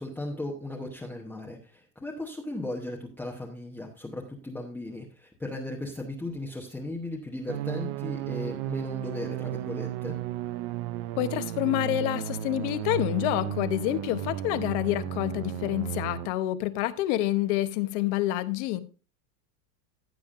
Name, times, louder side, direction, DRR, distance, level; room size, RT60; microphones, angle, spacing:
voice 1, 0.0-10.2, left 2 dB, 5° left, 0.9 m, -36 dB
sound 1, 7.5-16.3, right 12 dB, 45° right, 0.5 m, -34 dB
voice 2, 11.2-18.8, left 14 dB, 45° left, 0.9 m, -28 dB
15.0 x 7.0 x 2.5 m
supercardioid pair, 150°, 49 cm